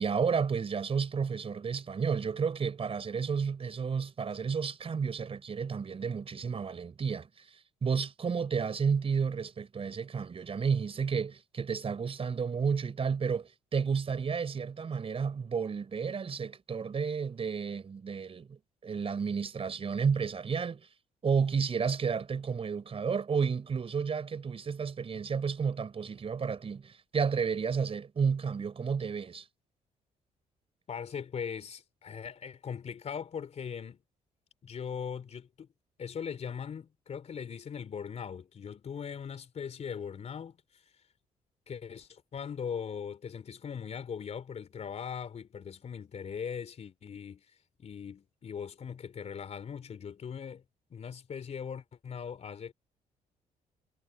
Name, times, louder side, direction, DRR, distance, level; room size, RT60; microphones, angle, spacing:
voice 1, 0.0-7.5 7.8-20.9 21.2-29.4, right 6 dB, 40° right, 4.5 m, -31 dB
voice 2, 30.9-34.0 34.6-35.7 36.0-40.6 41.7-47.4 47.8-50.6 50.9-52.7, left 7 dB, 50° left, 3.6 m, -40 dB
cardioid pair, 75°, 14 cm